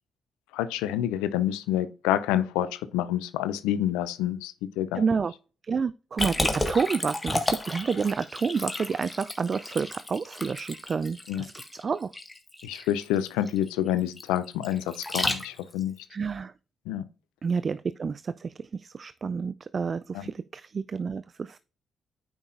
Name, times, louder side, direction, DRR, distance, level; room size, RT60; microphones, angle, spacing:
voice 1, 0.5-5.0 11.3-11.4 12.6-15.9 16.9-17.0 20.1-20.2, left 12 dB, 80° left, 0.5 m, -28 dB
voice 2, 4.9-5.3 5.6-12.1 16.1-16.5 17.4-21.6, right 5 dB, 45° right, 0.3 m, -29 dB
Liquid, 6.2-15.8, left 2 dB, 20° left, 1.6 m, -32 dB
9.0 x 5.9 x 2.5 m
hypercardioid pair, 45°, 0 cm